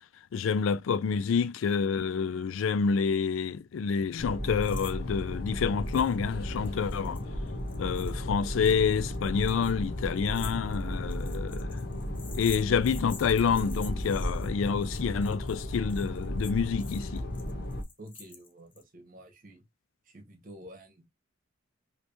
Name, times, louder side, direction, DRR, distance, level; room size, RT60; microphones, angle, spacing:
voice 1, 0.3-7.2 7.8-11.8 12.3-17.2, left 6 dB, 75° left, 0.3 m, -28 dB
sound 1, 4.2-17.8, left 1 dB, 55° left, 1.0 m, -35 dB
sound 2, 4.6-4.9 5.2-5.3 5.9-6.2 6.5-18.8, left 6 dB, 25° left, 0.5 m, -49 dB
voice 2, 18.0-19.6 20.1-21.1, equal, 45° right, 1.1 m, -49 dB
3.3 x 2.9 x 2.6 m
head